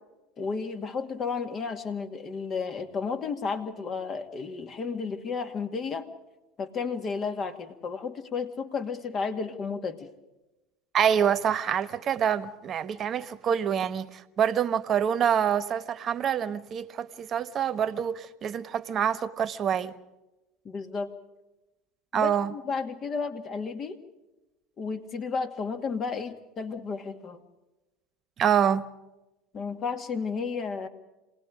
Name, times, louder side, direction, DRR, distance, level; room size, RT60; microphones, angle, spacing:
voice 1, 0.4-6.1 6.6-10.1 20.6-21.1 22.1-24.0 24.8-27.4 29.5-30.9, left 5 dB, 40° left, 2.2 m, -32 dB
voice 2, 10.9-19.9 22.1-22.5 28.4-28.9, right 8 dB, 40° right, 1.2 m, -26 dB
27.0 x 19.0 x 5.1 m
hypercardioid pair, 90°, 0 cm